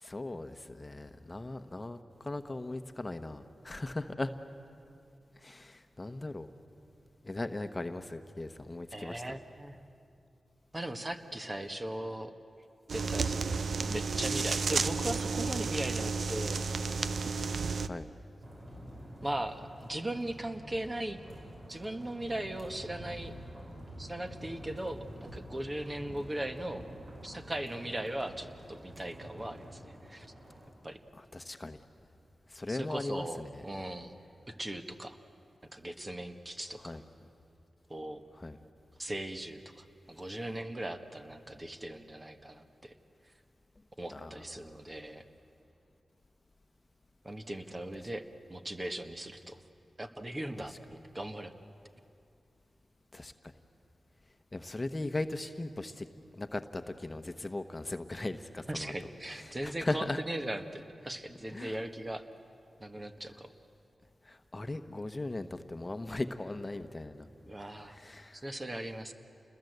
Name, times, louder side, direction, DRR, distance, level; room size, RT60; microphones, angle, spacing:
voice 1, 0.0-4.3 5.4-6.5 7.2-9.2 17.8-18.1 31.3-31.8 32.5-33.5 36.8-37.0 38.4-38.6 44.1-44.3 53.1-53.3 54.5-56.1 56.4-58.9 59.4-60.2 61.5-61.8 64.3-67.3 67.9-68.4, left 2 dB, 30° left, 8 dB, 1.1 m, -38 dB
voice 2, 8.9-9.8 10.7-12.4 12.9-16.6 19.2-21.2 21.7-23.3 24.0-26.8 27.2-30.3 30.8-31.0 32.7-34.1 34.5-35.2 35.7-37.0 37.9-38.2 39.0-43.0 44.0-45.3 47.2-49.6 50.0-51.5 58.7-62.2 62.8-63.5 67.4-68.0 68.3-69.1, right 1 dB, 30° right, 6 dB, 1.6 m, -39 dB
sound 1, 12.9-17.9, right 4 dB, 70° right, 0.6 m, -32 dB
sound 2, 18.4-30.7, equal, 55° right, 5.8 m, -48 dB
28.5 x 21.0 x 8.1 m, 2.6 s
cardioid pair, 55°, 0 cm